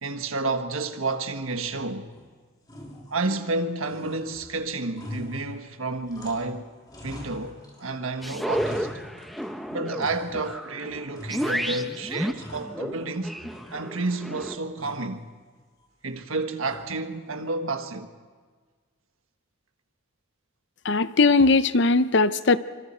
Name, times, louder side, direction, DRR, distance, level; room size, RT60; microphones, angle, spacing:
voice 1, 0.0-2.1 3.1-6.7 7.0-8.9 9.7-13.4 13.7-15.3 16.0-18.1, right 3 dB, 85° right, 1.5 m, -30 dB
sound 1, 1.7-2.3 2.6-3.6 3.8-6.6 6.9-7.9 8.2-9.6 10.0-10.7 11.1-11.8 12.1-13.2 13.5-14.2 14.8-15.2 16.6-17.1, equal, 20° left, 3.2 m, -43 dB
sound 2, 8.2-14.6, equal, ahead, 0.8 m, -32 dB
voice 2, 20.9-22.6, left 3 dB, 55° left, 0.7 m, -19 dB
26.0 x 25.5 x 4.5 m
head